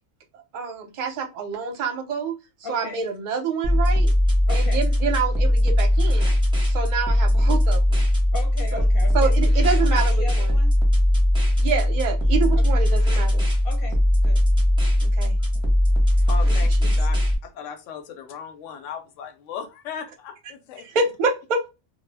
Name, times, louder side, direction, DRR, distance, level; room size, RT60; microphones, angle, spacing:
voice 1, 0.5-2.4 2.7-4.1 4.5-6.4 6.7-8.0 8.7-8.8 9.1-10.5 11.6-13.5 15.0-15.4 16.5-16.6 16.8-16.9 20.8-21.7, right 5 dB, 50° right, 0.6 m, -27 dB
voice 2, 2.6-3.0 4.5-4.8 8.3-10.7 12.5-12.9 13.6-14.4 15.5-15.6, left 3 dB, 50° left, 0.8 m, -37 dB
sound 1, 3.6-17.3, left 1 dB, 5° right, 0.5 m, -19 dB
voice 3, 16.3-17.2 17.4-20.9, left 7 dB, 80° left, 0.9 m, -37 dB
2.2 x 2.1 x 3.2 m
omnidirectional pair, 1.3 m